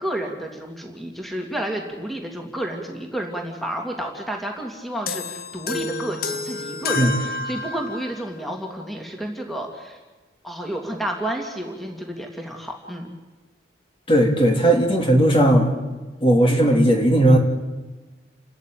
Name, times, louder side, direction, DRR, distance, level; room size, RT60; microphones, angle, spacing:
voice 1, 0.0-10.0 10.4-13.1, right 1 dB, ahead, 2 dB, 2.6 m, -31 dB
sound 1, 5.1-8.3, left 3 dB, 50° left, 1.2 m, -29 dB
voice 2, 14.1-15.7 16.2-17.4, right 1 dB, 30° left, 3 dB, 2.7 m, -16 dB
29.5 x 13.5 x 9.2 m, 1.2 s
head